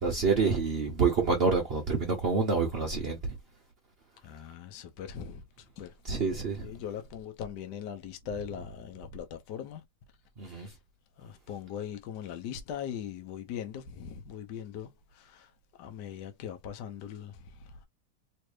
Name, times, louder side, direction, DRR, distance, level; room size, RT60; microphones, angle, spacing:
voice 1, 0.0-3.2 6.1-6.7 10.4-10.7, right 4 dB, 80° right, 0.5 m, -27 dB
voice 2, 4.2-5.4 5.8-5.9 6.3-9.8 10.6-10.7 11.2-14.9 15.2-15.5 15.8-17.4, left 8 dB, 65° left, 1.3 m, -40 dB
3.2 x 3.2 x 3.1 m
omnidirectional pair, 2.2 m